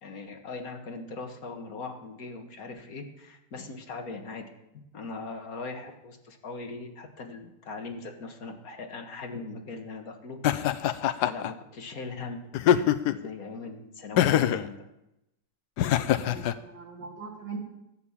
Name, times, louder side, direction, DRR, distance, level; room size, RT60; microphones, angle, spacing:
voice 1, 0.0-4.5 4.7-10.4 11.2-14.8, left 3 dB, 55° left, 4 dB, 2.0 m, -40 dB
Laughter, 10.4-11.5 12.5-13.3 14.2-14.7 15.8-16.5, left 11 dB, 70° left, 1.2 m, -23 dB
voice 2, 16.2-17.6, right 5 dB, 85° right, 0 dB, 3.5 m, -41 dB
13.5 x 8.4 x 7.3 m, 0.87 s
omnidirectional pair, 1.9 m